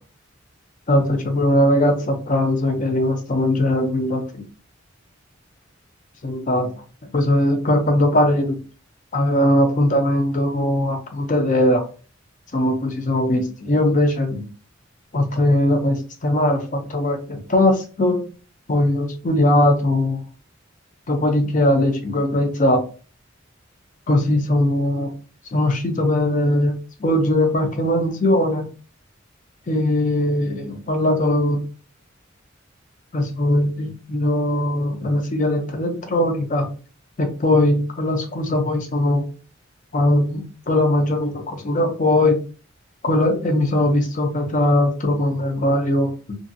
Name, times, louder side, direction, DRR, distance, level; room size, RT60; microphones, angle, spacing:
voice 1, 0.9-4.4 6.2-6.7 7.1-8.6 9.1-11.8 12.5-14.5 15.1-18.2 18.7-20.2 21.1-22.8 24.1-25.1 25.5-26.7 27.0-28.6 29.7-31.6 33.1-36.7 37.2-39.2 39.9-42.4 43.0-46.4, left 1 dB, 40° left, 4 dB, 0.6 m, -20 dB
2.6 x 2.3 x 2.6 m, 0.37 s
head